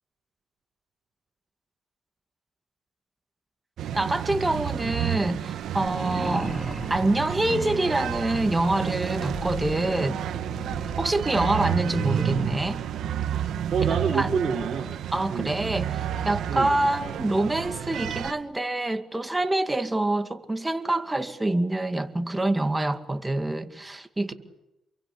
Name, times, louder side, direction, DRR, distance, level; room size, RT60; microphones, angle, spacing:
sound 1, 3.8-18.3, right 10 dB, 75° right, 1.7 m, -30 dB
voice 1, 3.9-6.5 6.9-10.2 11.0-12.8 14.1-14.3 15.1-24.3, right 2 dB, 15° right, 2.2 m, -26 dB
sound 2, 5.9-12.7, equal, 5° left, 2.9 m, -37 dB
voice 2, 13.7-14.9 15.3-15.5 16.5-16.7, right 6 dB, 50° right, 4.3 m, -27 dB
28.5 x 23.0 x 8.4 m
cardioid pair, 90°, 0 cm